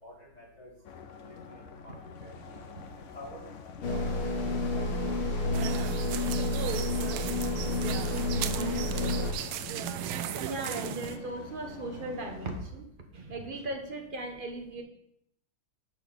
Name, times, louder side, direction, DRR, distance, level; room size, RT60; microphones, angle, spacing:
voice 1, 0.0-0.7 1.2-1.3 1.8-1.9 2.2-2.3 3.1-3.4 3.9-4.2 4.4-4.8 5.8-5.9 7.1-7.2 8.6-8.7 10.8-10.9, left 1 dB, 20° left, -7 dB, 3.5 m, -47 dB
sound 1, 0.8-12.6, left 5 dB, 65° left, 0.7 m, -46 dB
sound 2, 3.8-9.3, left 2 dB, 90° left, 2.4 m, -30 dB
voice 2, 5.2-5.6 10.4-12.9 13.1-14.8, right 2 dB, 30° right, 3 dB, 1.1 m, -38 dB
sound 3, 5.5-11.2, right 10 dB, 80° right, 1.4 m, -36 dB
6.2 x 6.0 x 7.0 m, 0.72 s
omnidirectional pair, 2.3 m